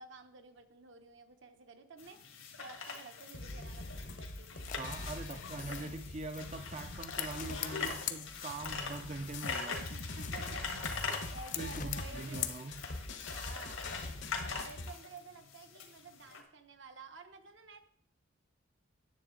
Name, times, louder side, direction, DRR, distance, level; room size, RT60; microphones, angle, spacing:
voice 1, 0.0-2.2 2.6-4.7 5.3-5.4 7.4-8.1 9.7-10.6 11.3-12.5 13.2-13.9 14.5-17.8, right 3 dB, 65° right, 0.9 m, -52 dB
sound 1, 2.0-16.4, left 5 dB, 80° left, 1.5 m, -43 dB
sound 2, 3.3-14.9, left 2 dB, 65° left, 0.9 m, -44 dB
sound 3, 4.4-8.9 9.2-13.2, left 10 dB, 40° left, 0.4 m, -44 dB
voice 2, 4.8-9.8 11.6-12.7, right 3 dB, 35° right, 0.4 m, -43 dB
9.6 x 7.1 x 3.8 m
head